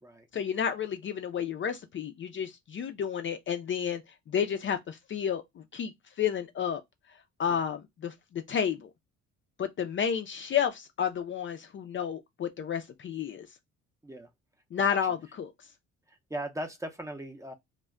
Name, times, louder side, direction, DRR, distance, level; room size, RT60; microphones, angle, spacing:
voice 1, 0.3-4.0 4.3-5.9 6.2-6.8 7.4-8.9 9.6-13.5 14.7-15.5, left 8 dB, 40° left, 0.4 m, -31 dB
voice 2, 14.8-15.1 16.1-17.5, right 1 dB, 10° right, 0.6 m, -39 dB
2.1 x 2.1 x 3.5 m
cardioid pair, 105°, 31 cm